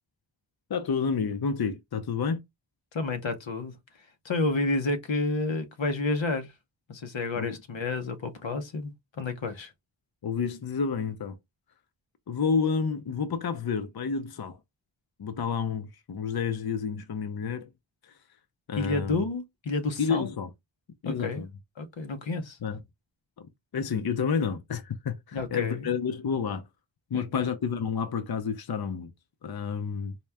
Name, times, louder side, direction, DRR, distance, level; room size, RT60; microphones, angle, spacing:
voice 1, 0.7-2.4 7.4-7.6 10.2-11.4 12.3-14.6 15.2-17.7 18.7-19.2 20.0-20.5 21.0-21.5 22.6-22.8 23.4-26.6 27.1-29.1 29.4-30.2, left 6 dB, 55° left, 0.6 m, -30 dB
voice 2, 2.9-3.7 4.2-6.5 6.9-9.7 18.7-20.3 21.0-21.4 21.8-22.6 25.3-25.9 27.1-27.5, left 3 dB, 85° left, 0.9 m, -30 dB
4.2 x 2.3 x 3.4 m
wide cardioid pair, 60°, 44 cm